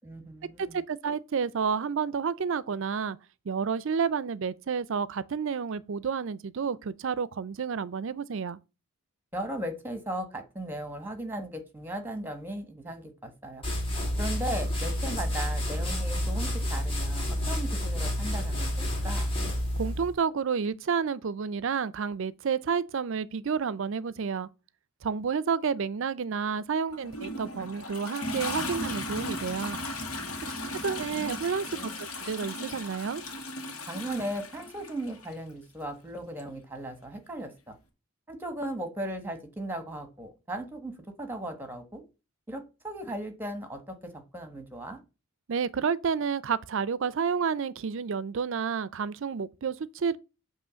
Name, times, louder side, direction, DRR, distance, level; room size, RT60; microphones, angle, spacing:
voice 1, 0.0-0.8 9.3-13.6 14.2-19.3 30.9-32.0 33.9-37.8 38.3-40.9 41.2-42.0 42.5-45.0, right 1 dB, 10° right, 1.3 m, -37 dB
voice 2, 0.6-3.2 3.5-8.6 19.8-24.5 25.0-29.8 30.4-30.5 30.8-33.2 45.5-50.2, right 6 dB, 60° right, 0.4 m, -30 dB
sound 1, 13.6-20.1, left 1 dB, 25° left, 2.2 m, -29 dB
Toilet flush, 26.9-35.3 36.4-36.5, left 2 dB, 80° left, 1.8 m, -37 dB
7.9 x 3.1 x 6.3 m
head